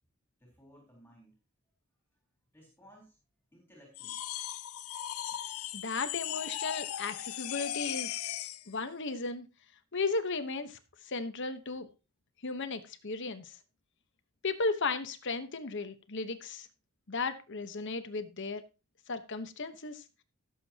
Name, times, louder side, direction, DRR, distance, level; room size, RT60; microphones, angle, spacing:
voice 1, 0.4-1.3 2.5-3.2 3.5-4.2, equal, 10° left, -1 dB, 3.9 m, -58 dB
sound 1, 3.9-8.7, left 12 dB, 75° left, 0.5 m, -38 dB
voice 2, 5.7-8.3 8.7-9.5 9.9-10.8 11.0-11.9 12.4-13.6 14.4-16.7 17.1-18.6 19.1-20.0, left 3 dB, 55° left, 10 dB, 1.1 m, -35 dB
16.5 x 7.7 x 2.9 m, 0.28 s
head